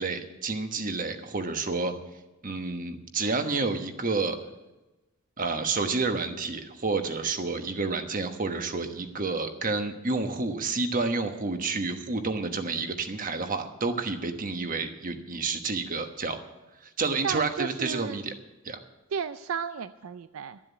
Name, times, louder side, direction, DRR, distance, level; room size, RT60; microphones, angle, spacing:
voice 1, 0.0-1.9 2.4-4.4 5.4-16.4 16.8-18.3 18.6-18.8, right 3 dB, 40° right, 7 dB, 1.2 m, -29 dB
voice 2, 17.2-18.2 19.1-20.6, right 7 dB, 75° right, 12 dB, 0.4 m, -33 dB
12.5 x 7.6 x 9.2 m, 1.1 s
head